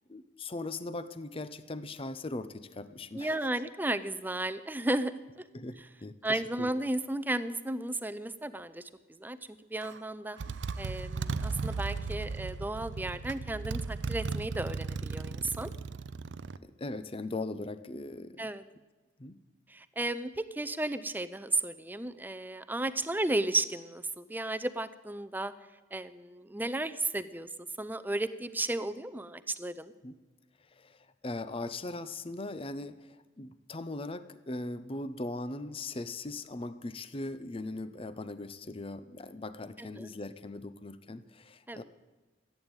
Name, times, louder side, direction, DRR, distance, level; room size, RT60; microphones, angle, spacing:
voice 1, 0.1-3.4 5.5-6.8 10.5-10.6 16.6-18.5 19.2-19.4 30.0-30.1 30.7-41.8, left 2 dB, 30° left, 13 dB, 0.7 m, -40 dB
voice 2, 3.1-5.4 6.2-9.4 9.6-10.4 10.8-15.7 18.4-18.6 19.7-25.5 25.9-27.5 27.8-29.9 39.8-40.1 41.7-41.8, right 2 dB, 10° right, 12 dB, 0.5 m, -34 dB
Motorcycle, 9.8-10.0 10.4-16.6, right 4 dB, 75° right, 0.5 m, -36 dB
14.5 x 9.2 x 8.9 m, 1.2 s
head